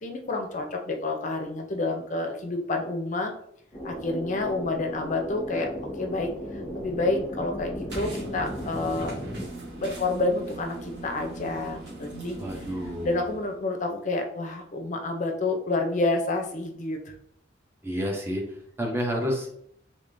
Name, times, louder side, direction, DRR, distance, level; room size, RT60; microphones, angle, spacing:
voice 1, 0.0-3.3 3.8-5.7 6.0-6.3 6.7-9.2 9.8-12.4 13.0-17.1, left 2 dB, 40° left, 4 dB, 0.5 m, -29 dB
sound 1, 3.7-9.5, equal, 10° left, 0.9 m, -36 dB
sound 2, 7.9-13.6, right 2 dB, 60° right, 1.3 m, -40 dB
voice 2, 12.4-13.2 17.8-19.5, equal, 10° right, 0 dB, 0.6 m, -30 dB
3.5 x 3.2 x 2.6 m, 0.68 s
head